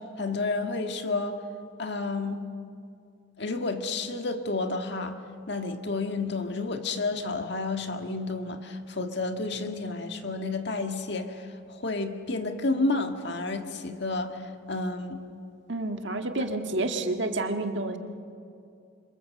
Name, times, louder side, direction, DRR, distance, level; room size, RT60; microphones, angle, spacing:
voice 1, 0.2-1.4 1.8-2.4 3.4-5.2 5.5-14.4 14.7-15.2, left 3 dB, 55° left, 5 dB, 1.9 m, -30 dB
voice 2, 15.7-18.0, right 2 dB, 60° right, 5 dB, 1.8 m, -29 dB
28.5 x 26.0 x 7.8 m, 2.6 s
head